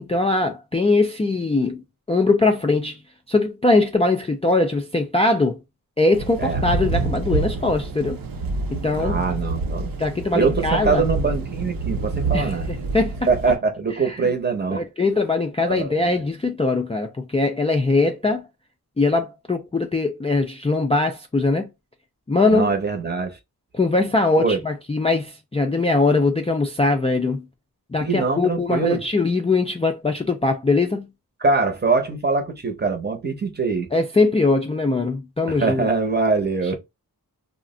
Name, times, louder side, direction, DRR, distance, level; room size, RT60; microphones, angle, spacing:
voice 1, 0.0-1.8 2.1-3.0 3.3-5.6 6.0-8.2 8.7-9.2 10.0-11.0 12.3-13.2 14.2-14.3 14.7-18.5 19.0-21.7 22.3-22.7 23.7-27.4 27.9-31.1 33.9-35.8, left 3 dB, 20° left, 0.3 m, -21 dB
Thunder / Rain, 6.1-13.6, right 3 dB, 65° right, 0.7 m, -27 dB
voice 2, 8.9-9.9 10.3-12.7 13.3-14.8 15.7-16.2 22.5-23.4 24.4-24.6 28.0-29.0 31.4-33.9 35.5-36.7, right 4 dB, 25° right, 0.7 m, -23 dB
2.4 x 2.1 x 3.6 m
wide cardioid pair, 130°, 37 cm